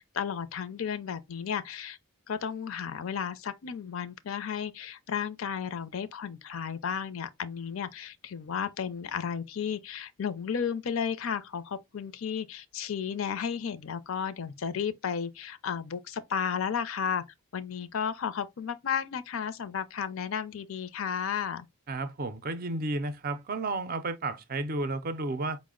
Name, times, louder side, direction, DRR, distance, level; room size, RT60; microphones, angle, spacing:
voice 1, 0.0-2.0 2.3-17.2 17.5-21.6, left 7 dB, 65° left, 0.4 m, -33 dB
voice 2, 21.9-25.6, right 2 dB, 40° right, 0.4 m, -32 dB
4.7 x 2.1 x 3.6 m
head